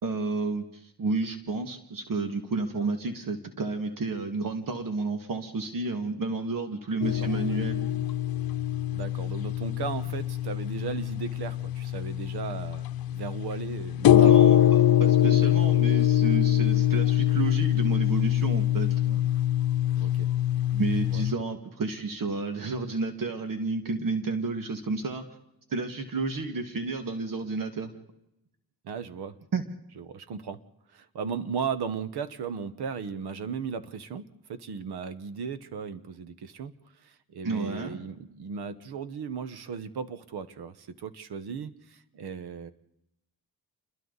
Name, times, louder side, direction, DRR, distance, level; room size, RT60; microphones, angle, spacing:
voice 1, 0.0-8.1 14.2-19.3 20.7-25.2 25.7-27.9 29.5-29.6 37.4-38.0, right 3 dB, 60° right, 6 dB, 2.1 m, -31 dB
sound 1, 7.0-21.3, left 12 dB, 65° left, 0.9 m, -24 dB
voice 2, 8.9-14.9 20.0-20.3 21.1-21.2 28.8-29.4 30.0-30.6 30.9-36.7 37.0-42.7, right 6 dB, 80° right, 13 dB, 1.3 m, -36 dB
28.5 x 22.5 x 4.1 m, 0.83 s
cardioid pair, 95°, 38 cm